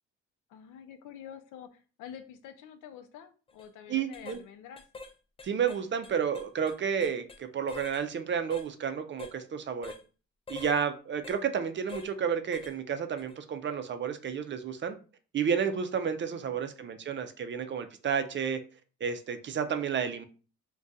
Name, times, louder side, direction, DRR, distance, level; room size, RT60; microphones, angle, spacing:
voice 1, 0.5-4.8 16.2-17.1, left 9 dB, 85° left, 0.5 m, -48 dB
sound 1, 3.5-3.7 4.1-4.4 4.8-5.1 5.4-7.4 7.7-8.0 8.5-8.7 9.2-9.4 9.8-10.0 10.5-10.8 11.2-11.4 11.9-12.1 12.5-12.8 13.2-13.3, left 4 dB, 20° left, 0.4 m, -45 dB
voice 2, 3.9-4.4 5.4-9.9 10.5-15.0 15.3-18.6 19.0-20.2, right 7 dB, 40° right, 0.5 m, -31 dB
2.4 x 2.3 x 3.9 m
cardioid pair, 90°, 30 cm